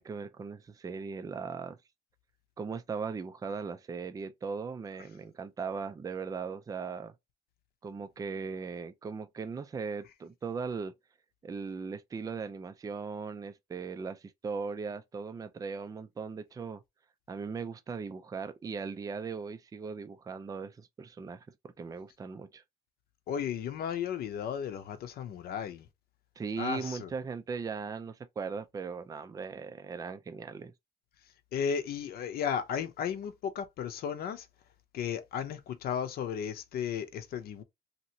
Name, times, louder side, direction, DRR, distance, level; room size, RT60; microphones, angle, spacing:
voice 1, 0.0-1.8 2.6-7.1 7.8-10.9 11.4-16.8 17.3-22.6 26.4-30.7, right 5 dB, 20° right, 0.4 m, -38 dB
voice 2, 23.3-25.9 26.6-27.1 31.5-34.5 34.9-37.6, left 8 dB, 65° left, 0.8 m, -34 dB
2.9 x 2.7 x 2.7 m
cardioid pair, 110°, 17 cm